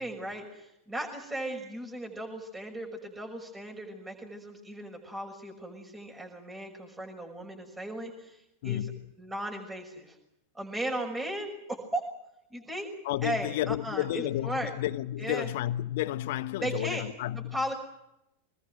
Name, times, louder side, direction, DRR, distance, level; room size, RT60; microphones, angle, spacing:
voice 1, 0.0-8.9 9.2-10.2 10.5-12.0 12.5-12.9 13.2-14.7 15.2-15.5 16.6-17.0 17.3-17.7, right 1 dB, 10° right, 6.1 m, -36 dB
voice 2, 8.6-9.0 13.0-17.7, left 14 dB, 50° left, 1.2 m, -32 dB
26.0 x 20.5 x 7.9 m
figure-of-eight pair, 90°, 0 cm